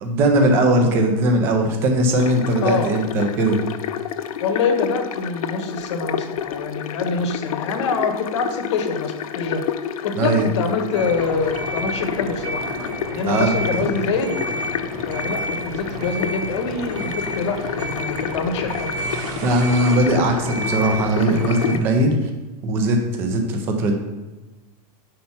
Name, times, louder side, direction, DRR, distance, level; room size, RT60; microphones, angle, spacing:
voice 1, 0.0-3.6 10.2-10.5 13.3-13.5 19.4-22.3 22.6-23.9, right 1 dB, 10° right, 4 dB, 0.3 m, -19 dB
sound 1, 2.2-21.8, left 10 dB, 60° left, 0.4 m, -30 dB
voice 2, 2.6-2.9 4.4-9.7 10.0-12.6 13.1-14.3 15.1-18.9, left 4 dB, 45° left, 6 dB, 0.9 m, -25 dB
sound 2, 10.9-21.7, right 2 dB, 30° right, 0.8 m, -30 dB
5.3 x 4.4 x 5.6 m, 1.1 s
supercardioid pair, 175°, 20 cm